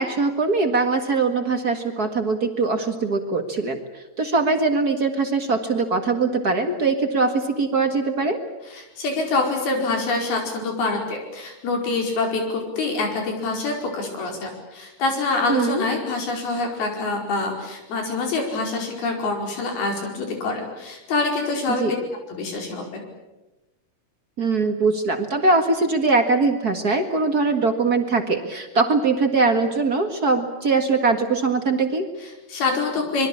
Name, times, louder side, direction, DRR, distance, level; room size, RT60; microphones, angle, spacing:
voice 1, 0.0-3.8 4.2-8.4 15.5-15.8 21.8-21.9 24.4-32.1, right 3 dB, 45° right, 6 dB, 1.2 m, -21 dB
voice 2, 8.6-21.9 22.4-23.0 32.2-33.3, left 3 dB, 75° left, 2 dB, 6.8 m, -26 dB
25.5 x 22.5 x 8.6 m, 1.0 s
omnidirectional pair, 4.5 m